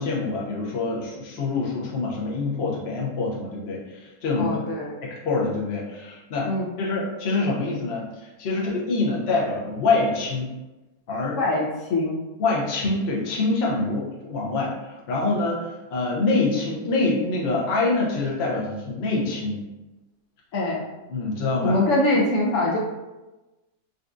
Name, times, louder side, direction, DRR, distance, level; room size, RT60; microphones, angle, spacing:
voice 1, 0.0-4.6 5.0-6.5 6.8-10.5 11.1-11.4 12.4-19.6 21.1-21.8, left 3 dB, 55° left, -4 dB, 0.7 m, -25 dB
voice 2, 4.4-4.9 6.4-6.7 11.4-12.2 20.5-20.9 21.6-22.8, left 2 dB, 90° left, -3 dB, 0.6 m, -23 dB
4.0 x 2.3 x 2.5 m, 1.1 s
omnidirectional pair, 1.9 m